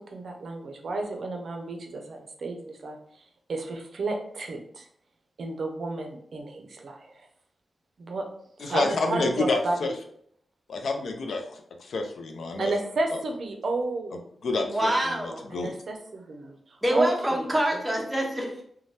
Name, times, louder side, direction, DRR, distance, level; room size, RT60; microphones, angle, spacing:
voice 1, 0.1-3.0 3.5-4.9 5.4-7.1 8.0-8.3 8.7-9.9 12.6-14.3 15.5-16.6 16.9-17.4, right 2 dB, 65° right, 3 dB, 0.5 m, -31 dB
voice 2, 8.6-9.9 10.7-11.4 11.9-12.7 14.4-14.9 15.2-15.7, left 3 dB, 75° left, 4 dB, 0.4 m, -28 dB
voice 3, 14.6-15.4 16.8-18.6, right 1 dB, 10° right, 0 dB, 0.7 m, -26 dB
2.7 x 2.2 x 3.2 m, 0.66 s
wide cardioid pair, 120°, 0 cm